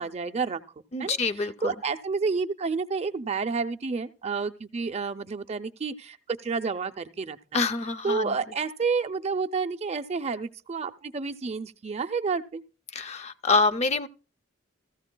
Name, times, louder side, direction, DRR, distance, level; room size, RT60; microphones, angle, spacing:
voice 1, 0.0-7.6 8.0-12.6, right 4 dB, 30° right, 0.5 m, -30 dB
voice 2, 0.9-1.7 7.5-8.3 12.9-14.1, left 3 dB, 35° left, 0.5 m, -26 dB
15.5 x 14.5 x 2.2 m
head